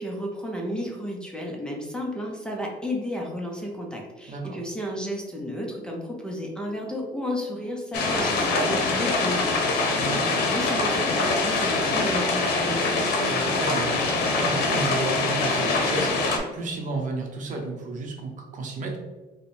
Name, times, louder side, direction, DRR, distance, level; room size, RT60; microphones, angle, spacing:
voice 1, 0.0-13.0, equal, 5° left, -1 dB, 0.7 m, -33 dB
voice 2, 4.3-4.6 10.0-10.3 13.2-19.0, right 2 dB, 50° right, 2 dB, 0.8 m, -32 dB
sound 1, 7.9-16.4, left 3 dB, 70° left, 0.8 m, -24 dB
4.5 x 2.2 x 3.3 m, 1.2 s
cardioid pair, 110°, 17 cm